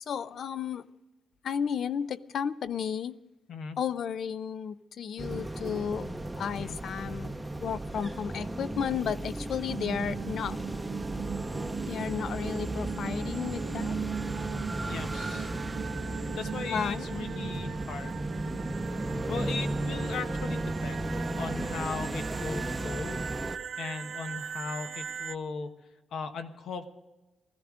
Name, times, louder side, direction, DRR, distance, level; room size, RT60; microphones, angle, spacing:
voice 1, 0.1-0.9 1.4-3.2 3.8-6.1 6.4-7.3 7.6-10.6 11.9-13.9 16.6-17.1, left 7 dB, 60° left, 0.5 m, -33 dB
sound 1, 5.2-23.6, right 1 dB, 5° right, 0.6 m, -35 dB
sound 2, 9.7-25.4, right 8 dB, 60° right, 0.5 m, -40 dB
voice 2, 14.8-15.5 16.4-18.2 19.3-23.2 23.8-25.7 26.1-26.9, left 5 dB, 80° left, 1.2 m, -38 dB
20.0 x 15.0 x 3.7 m
wide cardioid pair, 165°, 0 cm